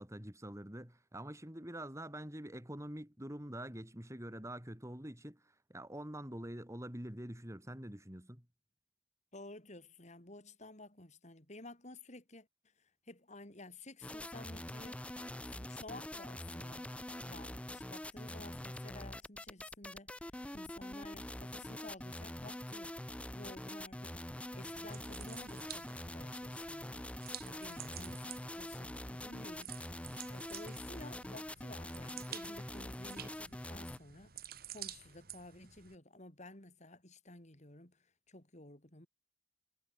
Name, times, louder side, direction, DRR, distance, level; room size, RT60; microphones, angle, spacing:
voice 1, 0.0-8.4 28.1-28.2, right 1 dB, 15° right, 5.0 m, -46 dB
voice 2, 9.3-12.5 12.8-15.1 15.4-16.9 17.2-20.1 20.5-23.0 23.3-24.3 24.5-25.9 26.1-27.1 27.4-29.7 30.3-34.4 34.7-39.1, left 2 dB, 40° left, 4.9 m, -53 dB
sound 1, 14.0-34.0, left 1 dB, 5° left, 0.6 m, -45 dB
sound 2, 24.7-35.9, right 10 dB, 60° right, 4.2 m, -51 dB
head